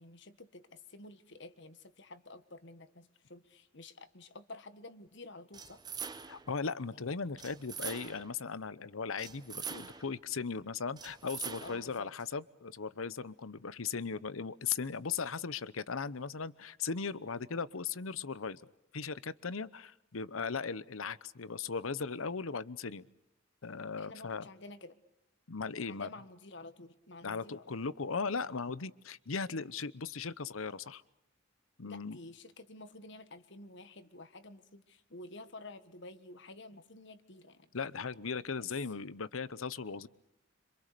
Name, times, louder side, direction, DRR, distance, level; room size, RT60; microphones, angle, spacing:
voice 1, 0.0-5.8 6.9-7.1 11.6-12.1 24.0-25.0 25.8-27.8 31.8-37.7 38.6-38.7, left 2 dB, 60° left, 11 dB, 1.6 m, -51 dB
sound 1, 5.5-6.5 7.4-8.4 9.2-10.2 11.0-11.9, right 6 dB, 20° right, 1.0 m, -43 dB
voice 2, 6.3-18.6 18.9-23.1 23.6-24.5 25.5-26.1 27.2-31.0 31.8-32.2 37.7-40.1, left 5 dB, 85° left, 17 dB, 0.9 m, -38 dB
26.5 x 26.5 x 6.8 m, 0.83 s
head